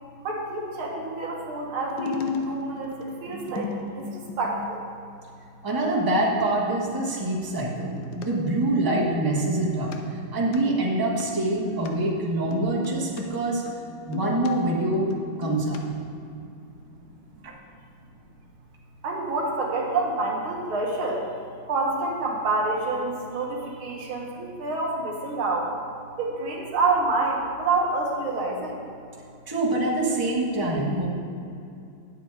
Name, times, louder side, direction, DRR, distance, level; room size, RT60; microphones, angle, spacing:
voice 1, 0.2-2.2 2.4-4.8 19.0-21.2 21.7-25.7 26.2-28.8, right 3 dB, 85° right, -1 dB, 2.2 m, -27 dB
sound 1, 1.8-4.9 8.0-8.3 9.9-10.0 10.4-10.6 11.2-11.3 11.8-11.9 12.5-13.2 13.7-14.5 14.9-15.8 16.1-16.2, left 4 dB, 70° left, 1.4 m, -34 dB
voice 2, 5.6-9.9 10.3-13.7 14.1-15.1 15.4-15.8 29.5-31.1, right 1 dB, 10° right, -5 dB, 1.2 m, -25 dB
9.4 x 8.0 x 4.8 m, 2.5 s
omnidirectional pair, 2.2 m